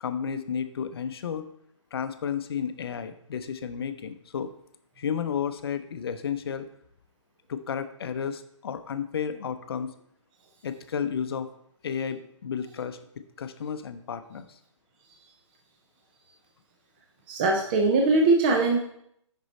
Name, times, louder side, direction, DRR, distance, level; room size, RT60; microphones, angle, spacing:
voice 1, 0.0-1.5 1.9-4.5 5.0-6.7 7.5-9.9 10.6-11.5 11.8-13.0 13.4-14.6, left 7 dB, 50° left, 10 dB, 0.6 m, -32 dB
voice 2, 17.3-18.8, right 3 dB, 20° right, 1 dB, 0.4 m, -21 dB
6.2 x 5.4 x 4.1 m, 0.72 s
hypercardioid pair, 155°, 16 cm